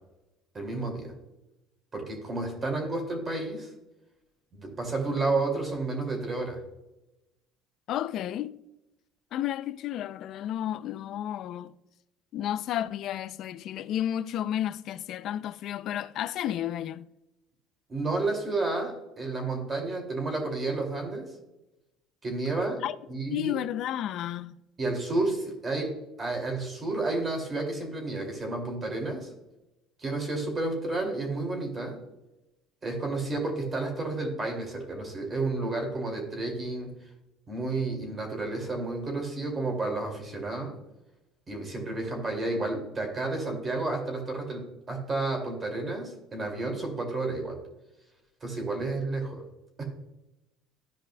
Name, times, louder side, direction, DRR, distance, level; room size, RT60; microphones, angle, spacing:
voice 1, 0.5-1.1 1.9-3.7 4.5-6.6 17.9-21.3 22.2-22.8 23.1-23.6 24.8-29.3 30.0-32.0 32.8-36.9 37.5-40.8 41.5-47.6 48.4-49.4 49.8-49.9, right 2 dB, 25° right, 2.4 m, -31 dB
voice 2, 7.9-8.6 9.3-11.7 12.3-17.1 22.8-23.0 23.3-24.6, left 11 dB, 55° left, 0.4 m, -32 dB
14.0 x 5.0 x 2.2 m
cardioid pair, 130°, 0 cm